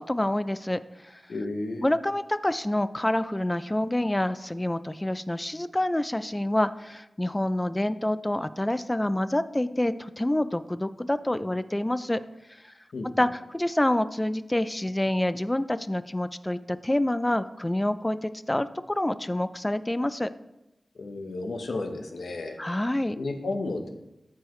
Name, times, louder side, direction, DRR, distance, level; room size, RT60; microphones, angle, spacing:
voice 1, 0.0-1.2 1.8-12.2 13.2-20.3 22.6-23.2, left 1 dB, 15° left, 13 dB, 0.4 m, -27 dB
voice 2, 1.3-1.9 12.9-13.1 21.0-22.6 23.2-23.9, left 2 dB, 90° left, 4 dB, 1.0 m, -32 dB
13.5 x 4.7 x 3.1 m, 0.91 s
wide cardioid pair, 100°, 0 cm